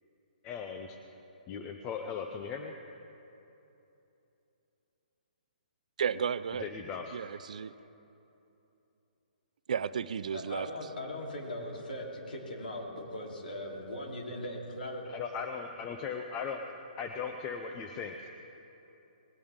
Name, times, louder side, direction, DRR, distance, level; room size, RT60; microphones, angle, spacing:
voice 1, 0.4-1.0 1.5-2.7 6.6-7.2 15.1-16.6 17.0-18.3, left 6 dB, 15° left, 0.4 m, -38 dB
voice 2, 6.0-6.7 7.1-7.7 9.7-10.7, right 7 dB, 50° right, 0.4 m, -33 dB
voice 3, 10.3-15.0, left 1 dB, 80° left, 3.4 m, -39 dB
19.0 x 17.5 x 3.6 m
hypercardioid pair, 175°, 5 cm